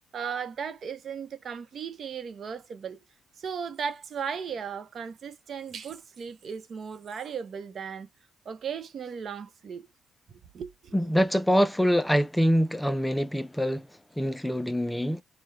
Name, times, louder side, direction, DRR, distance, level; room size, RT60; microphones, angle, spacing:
voice 1, 0.1-3.0 3.4-8.1 8.4-9.9 10.3-10.9, right 6 dB, 55° right, 0.8 m, -36 dB
voice 2, 10.9-15.2, equal, 5° left, 0.4 m, -25 dB
4.5 x 2.2 x 3.4 m
cardioid pair, 90°, 0 cm